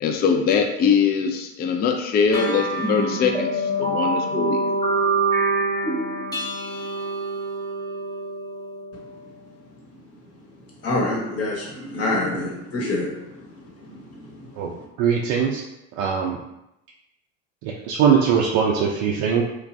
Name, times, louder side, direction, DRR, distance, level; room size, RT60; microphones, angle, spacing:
voice 1, 0.0-4.6, left 6 dB, 30° left, 4 dB, 0.3 m, -22 dB
sound 1, 2.3-9.2, right 2 dB, 10° left, 0.7 m, -25 dB
voice 2, 10.8-14.8, left 2 dB, 45° left, -2 dB, 1.1 m, -28 dB
voice 3, 15.0-15.6 16.0-16.4 17.9-19.4, right 7 dB, 70° right, -1 dB, 0.5 m, -20 dB
3.1 x 2.2 x 2.5 m, 0.89 s
hypercardioid pair, 80°, 34 cm